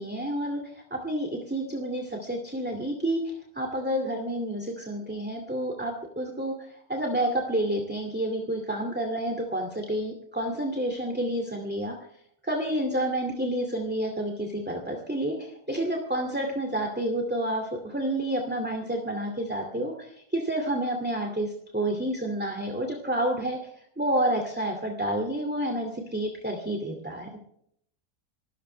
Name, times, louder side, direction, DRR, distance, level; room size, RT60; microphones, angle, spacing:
voice 1, 0.0-12.0 12.4-23.6 24.0-27.3, right 1 dB, 5° right, 2 dB, 2.3 m, -29 dB
27.0 x 14.0 x 3.3 m, 0.69 s
omnidirectional pair, 1.6 m